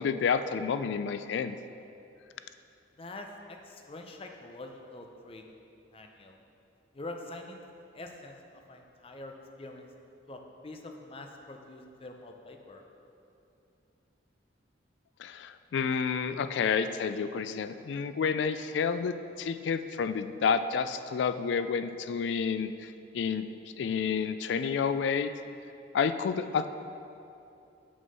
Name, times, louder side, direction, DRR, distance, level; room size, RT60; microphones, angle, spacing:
voice 1, 0.0-1.6 15.2-23.5 23.8-25.3 25.9-26.7, left 6 dB, 75° left, 11 dB, 0.3 m, -30 dB
voice 2, 3.0-5.4 5.9-6.4 6.9-7.6 7.9-8.4 8.7-9.9 10.3-12.8, left 2 dB, 30° left, 3 dB, 0.6 m, -45 dB
6.3 x 6.2 x 5.3 m, 2.8 s
head